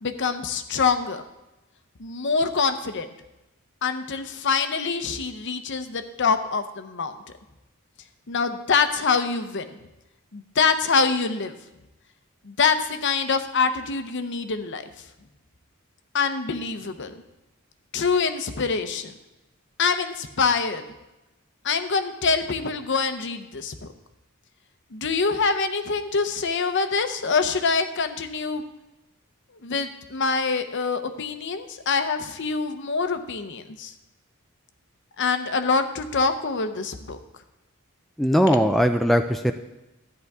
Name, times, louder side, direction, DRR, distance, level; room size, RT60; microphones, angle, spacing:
voice 1, 0.0-1.2 2.0-3.1 3.8-7.1 8.3-9.7 10.3-11.6 12.4-14.8 16.1-17.2 17.9-19.1 19.8-20.8 21.6-23.9 24.9-28.6 29.6-33.9 35.2-37.2, left 5 dB, 55° left, 9 dB, 0.8 m, -25 dB
voice 2, 38.2-39.5, equal, ahead, 5 dB, 0.3 m, -19 dB
13.0 x 9.4 x 3.6 m, 0.96 s
head